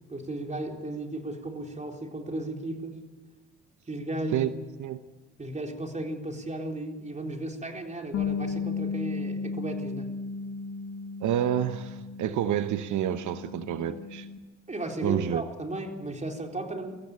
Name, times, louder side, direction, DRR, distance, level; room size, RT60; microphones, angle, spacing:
voice 1, 0.1-3.0 3.9-4.5 5.4-10.1 14.7-17.1, right 1 dB, 25° right, 2 dB, 4.2 m, -35 dB
Bass guitar, 8.1-14.4, left 5 dB, 65° left, 1.8 m, -35 dB
voice 2, 11.2-14.3 15.0-15.4, right 10 dB, 75° right, 10 dB, 1.0 m, -28 dB
23.5 x 16.0 x 8.7 m, 1.2 s
cardioid pair, 90°, 30 cm